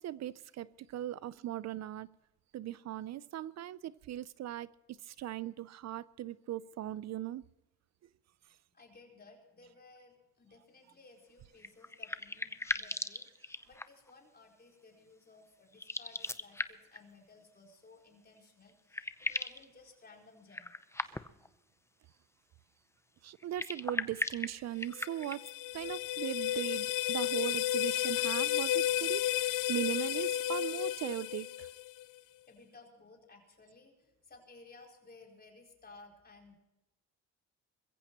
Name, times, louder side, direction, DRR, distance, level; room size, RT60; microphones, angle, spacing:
voice 1, 0.0-2.1 2.5-7.4 23.2-25.4 25.7-31.7, right 12 dB, 60° right, 18 dB, 0.5 m, -39 dB
voice 2, 8.7-13.3 13.7-20.7 32.2-36.5, left 3 dB, 30° left, 1 dB, 4.3 m, -58 dB
sound 1, 11.6-14.1 15.7-17.0 18.4-18.5 18.7-19.7 20.5-21.5 23.4-25.5, left 2 dB, 10° left, 0.6 m, -38 dB
sound 2, 25.0-32.0, left 13 dB, 90° left, 0.6 m, -33 dB
21.5 x 15.0 x 3.0 m, 1.0 s
cardioid pair, 90°, 30 cm